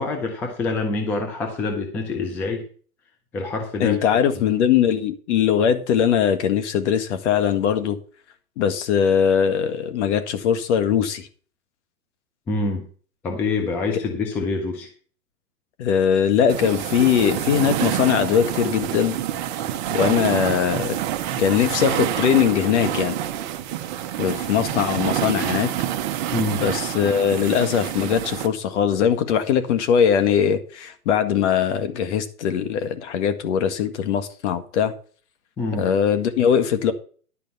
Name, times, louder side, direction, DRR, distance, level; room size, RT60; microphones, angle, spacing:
voice 1, 0.0-2.7 3.3-4.0 12.5-12.9 13.2-14.9 26.3-26.6 35.6-35.9, left 3 dB, 5° left, 3 dB, 0.4 m, -26 dB
voice 2, 3.8-8.0 8.6-11.3 15.8-19.2 19.9-21.0 21.4-23.2 24.2-25.7 26.6-34.9 35.8-36.9, left 8 dB, 45° left, 10 dB, 1.8 m, -21 dB
sound 1, 16.5-28.5, right 11 dB, 30° right, 0.8 m, -27 dB
11.5 x 5.2 x 6.9 m, 0.42 s
hypercardioid pair, 140°, 46 cm